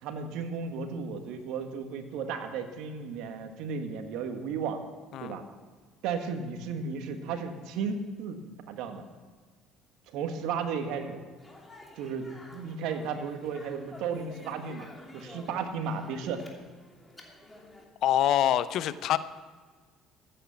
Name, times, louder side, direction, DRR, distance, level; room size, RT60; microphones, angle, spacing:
voice 1, 0.0-4.8 5.2-5.4 6.0-8.4 8.7-9.0 10.1-11.2 12.0-14.9 15.1-16.4, right 5 dB, 75° right, 6 dB, 1.6 m, -34 dB
Speech, 11.4-17.8, left 1 dB, 15° left, 2.8 m, -51 dB
voice 2, 18.0-19.2, left 11 dB, 65° left, 14 dB, 0.7 m, -25 dB
14.5 x 9.2 x 7.1 m, 1.5 s
supercardioid pair, 70°, 0 cm